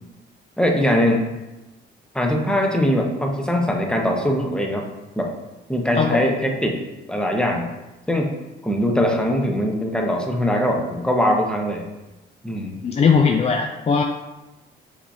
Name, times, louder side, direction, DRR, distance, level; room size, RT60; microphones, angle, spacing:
voice 1, 0.6-1.3 2.1-4.9 5.2-5.3 5.7-6.8 7.1-7.7 8.1-8.3 8.6-11.8 12.4-12.8, equal, 5° left, 1 dB, 0.8 m, -21 dB
voice 2, 6.0-6.3 12.8-14.0, left 5 dB, 35° left, 2 dB, 0.4 m, -19 dB
5.9 x 3.3 x 2.7 m, 1.0 s
cardioid pair, 90°, 20 cm